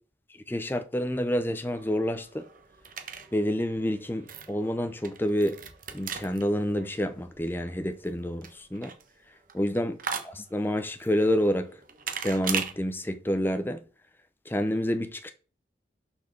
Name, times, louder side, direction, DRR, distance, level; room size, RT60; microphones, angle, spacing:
voice 1, 0.5-2.5 3.3-5.6 5.9-8.9 9.5-10.0 10.2-11.7 12.2-13.8 14.5-15.3, equal, 10° left, 0.6 m, -28 dB
sound 1, 1.5-12.7, right 7 dB, 45° right, 1.1 m, -39 dB
6.6 x 4.5 x 6.6 m
head